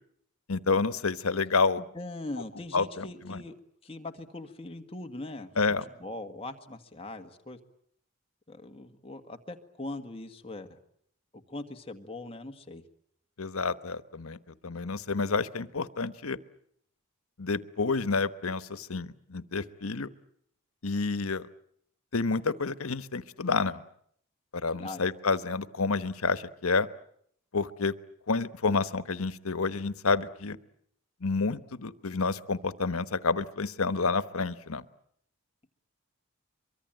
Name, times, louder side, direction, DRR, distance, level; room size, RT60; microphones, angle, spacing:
voice 1, 0.5-1.8 2.7-3.4 5.6-5.8 13.4-16.4 17.4-20.1 20.8-21.5 22.1-23.8 24.5-26.9 27.5-27.9 28.3-30.6 31.2-34.8, left 4 dB, 90° left, 13 dB, 1.1 m, -29 dB
voice 2, 1.9-3.5 3.8-5.5 6.0-7.6 8.5-10.8 11.5-12.8 24.8-25.1, left 2 dB, 25° left, 5 dB, 1.7 m, -41 dB
24.0 x 23.5 x 9.1 m, 0.69 s
head